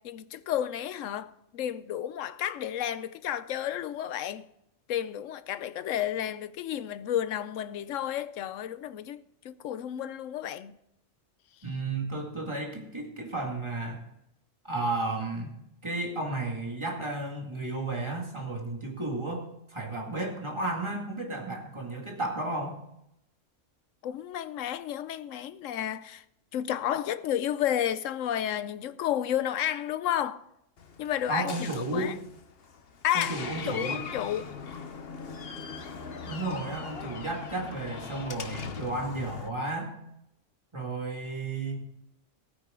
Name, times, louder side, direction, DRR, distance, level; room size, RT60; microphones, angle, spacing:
voice 1, 0.0-4.5 4.9-10.7 24.0-26.2 26.5-30.4 31.0-32.2 33.0-33.4 33.6-34.5, left 10 dB, 75° left, 1.0 m, -31 dB
voice 2, 11.6-14.1 14.6-15.6 15.8-22.8 31.3-32.1 33.1-34.1 36.3-39.9 40.7-41.8, right 2 dB, 20° right, 2.2 m, -33 dB
Door, 30.8-39.5, left 5 dB, 50° left, 1.1 m, -40 dB
16.0 x 9.4 x 3.8 m
omnidirectional pair, 1.3 m